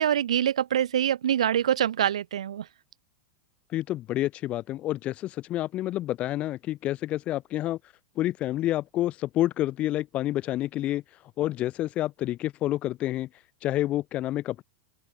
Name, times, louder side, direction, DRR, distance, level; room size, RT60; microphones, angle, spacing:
voice 1, 0.0-2.6, right 10 dB, 75° right, 3.5 m, -25 dB
voice 2, 3.7-7.8 8.2-11.0 11.4-13.3 13.6-14.6, left 14 dB, 40° left, 3.9 m, -28 dB
open air
hypercardioid pair, 105°, 3 cm